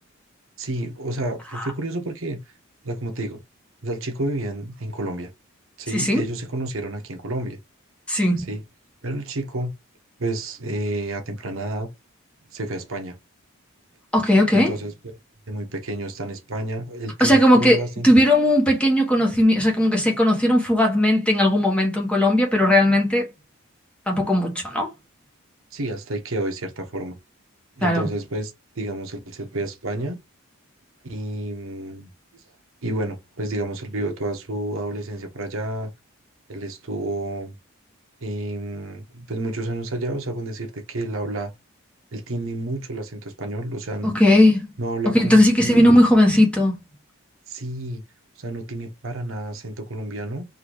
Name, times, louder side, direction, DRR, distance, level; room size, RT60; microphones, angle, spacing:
voice 1, 0.6-2.4 2.8-3.4 3.8-5.3 5.8-7.6 8.4-8.6 9.0-9.7 10.2-11.9 12.5-13.2 14.5-14.9 15.5-18.1 25.7-27.2 27.8-30.2 31.0-32.1 32.8-35.9 36.5-37.5 38.2-41.5 42.1-44.2 44.8-45.9 47.5-48.0 48.4-50.5, right 1 dB, 70° right, 1.0 m, -30 dB
voice 2, 5.9-6.2 8.1-8.5 14.1-14.7 17.2-23.3 24.1-24.9 27.8-28.1 44.0-44.7 45.1-46.8, left 1 dB, 5° left, 1.1 m, -17 dB
3.9 x 2.6 x 4.7 m
head